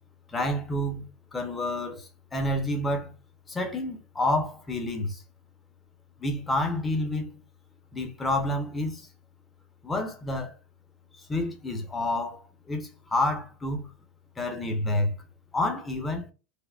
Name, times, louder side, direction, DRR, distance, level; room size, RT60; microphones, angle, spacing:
voice 1, 0.3-1.1 1.3-2.0 2.3-3.1 3.5-5.2 6.2-7.4 7.9-9.0 9.8-10.5 11.3-12.4 12.7-12.8 13.1-13.9 14.4-15.1 15.5-16.3, left 1 dB, 15° left, 0.8 m, -28 dB
3.4 x 2.1 x 2.4 m
supercardioid pair, 120°, 0 cm